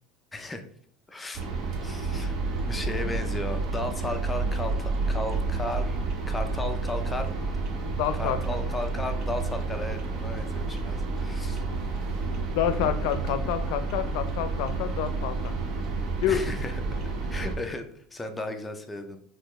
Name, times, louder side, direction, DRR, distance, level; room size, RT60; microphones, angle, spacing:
voice 1, 0.3-0.6 1.1-1.4 1.8-6.0 6.3-7.3 8.1-11.6 16.3-19.2, left 2 dB, 10° left, 6 dB, 0.4 m, -35 dB
sound 1, 1.3-17.6, right 3 dB, 35° right, 0.7 m, -30 dB
voice 2, 8.0-8.4 12.6-15.6 16.2-16.4, left 10 dB, 60° left, 10 dB, 0.5 m, -28 dB
5.5 x 3.2 x 3.0 m, 0.63 s
cardioid pair, 170°, 0 cm